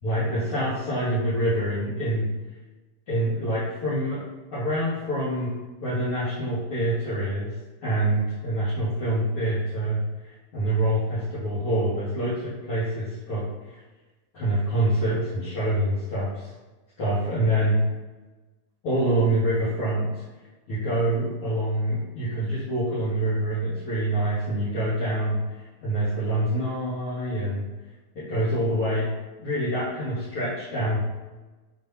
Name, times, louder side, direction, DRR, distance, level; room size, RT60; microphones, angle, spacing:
voice 1, 0.0-2.3 3.1-4.2 4.5-5.5 5.8-7.5 7.8-10.0 10.5-13.4 14.3-16.5 17.0-17.8 18.8-20.1 20.7-27.6 28.1-29.1 29.4-31.0, right 1 dB, 45° left, -10 dB, 3.2 m, -26 dB
7.2 x 5.5 x 5.9 m, 1.2 s
omnidirectional pair, 3.6 m